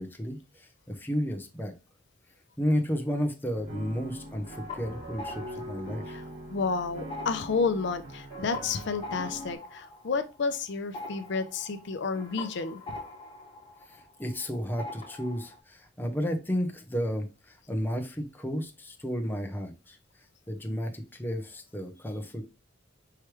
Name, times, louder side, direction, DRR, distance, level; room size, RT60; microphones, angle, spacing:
voice 1, 0.0-1.7 2.6-6.2 13.9-20.0 20.5-22.4, equal, 10° left, 4 dB, 0.8 m, -32 dB
sound 1, 3.5-9.6, right 1 dB, 75° right, 2.7 m, -42 dB
sound 2, 4.2-6.7 7.0-14.5 14.8-15.6, left 3 dB, 25° left, 1.8 m, -44 dB
voice 2, 6.5-12.8, left 4 dB, 65° left, 9 dB, 0.5 m, -31 dB
4.6 x 3.3 x 3.1 m, 0.29 s
head